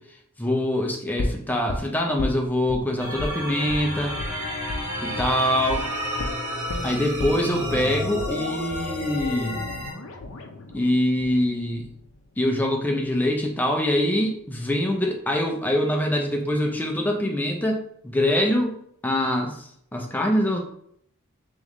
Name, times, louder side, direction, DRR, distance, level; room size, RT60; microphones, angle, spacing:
voice 1, 0.4-4.2 5.0-5.9 6.8-9.5 10.7-11.9 12.4-18.7 19.0-20.6, left 1 dB, 10° left, 1 dB, 0.5 m, -24 dB
sound 1, 1.2-2.8 3.2-3.4 3.7-3.8 4.2-4.3 4.7-4.8 5.2-5.4 5.7-5.8 6.2-12.2 12.5-12.6, left 2 dB, 65° left, 0.6 m, -33 dB
sound 2, 3.0-9.9, equal, 35° right, 1.7 m, -31 dB
3.5 x 3.0 x 3.7 m, 0.69 s
head